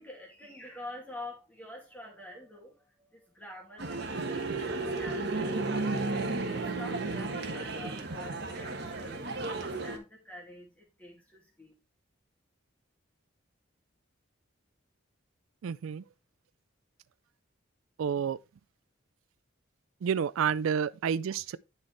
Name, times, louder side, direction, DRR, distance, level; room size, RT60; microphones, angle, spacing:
voice 1, 0.0-5.8 6.1-11.7, left 1 dB, 10° left, 2.4 m, -47 dB
sound 1, 3.8-10.0, right 3 dB, 55° right, 1.3 m, -33 dB
voice 2, 15.6-16.0 18.0-18.4 20.0-21.6, right 7 dB, 85° right, 0.4 m, -29 dB
10.5 x 4.4 x 3.3 m
head